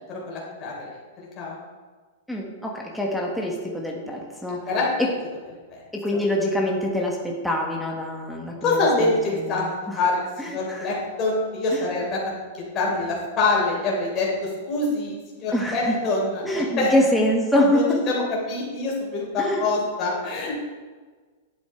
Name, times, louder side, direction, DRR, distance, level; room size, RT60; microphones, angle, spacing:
voice 1, 0.1-1.6 4.7-4.9 5.7-5.8 8.6-9.6 10.0-12.2 12.7-16.9 17.7-20.5, left 3 dB, 25° left, -4 dB, 3.4 m, -25 dB
voice 2, 2.3-4.6 5.9-10.0 10.4-10.9 11.7-11.9 15.5-16.0 16.4-18.0 19.4-19.6, left 1 dB, ahead, -2 dB, 1.2 m, -25 dB
11.5 x 8.1 x 4.4 m, 1.4 s
supercardioid pair, 160°, 0 cm